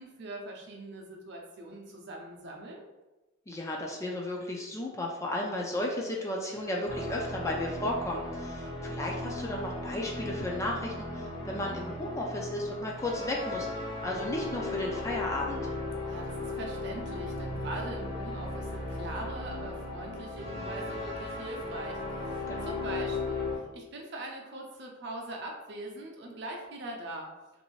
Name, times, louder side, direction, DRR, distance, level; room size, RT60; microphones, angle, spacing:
voice 1, 0.0-2.8 16.1-27.3, right 1 dB, 55° right, 0 dB, 0.6 m, -42 dB
voice 2, 3.5-13.7 14.0-15.7 22.5-22.8, left 1 dB, 15° left, -1 dB, 0.3 m, -34 dB
sound 1, 6.9-23.6, left 2 dB, 60° left, 1.2 m, -36 dB
3.2 x 2.6 x 3.1 m, 1.1 s
head